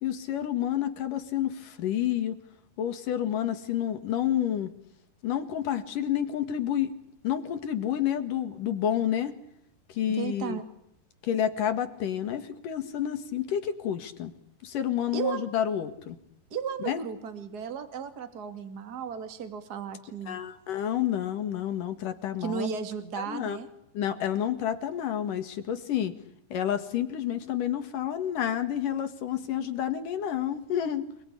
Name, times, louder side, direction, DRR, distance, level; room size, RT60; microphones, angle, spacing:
voice 1, 0.0-2.4 2.8-4.7 5.2-6.9 7.2-9.4 9.9-10.6 11.2-14.3 14.6-16.2 16.8-17.0 20.3-22.7 23.2-23.6 23.9-26.1 26.5-31.1, left 10 dB, 60° left, 9 dB, 3.2 m, -29 dB
voice 2, 10.1-10.6 15.1-15.5 16.5-20.4 22.4-23.7, right 7 dB, 30° right, 9 dB, 2.5 m, -34 dB
29.0 x 21.0 x 10.0 m, 0.76 s
omnidirectional pair, 4.5 m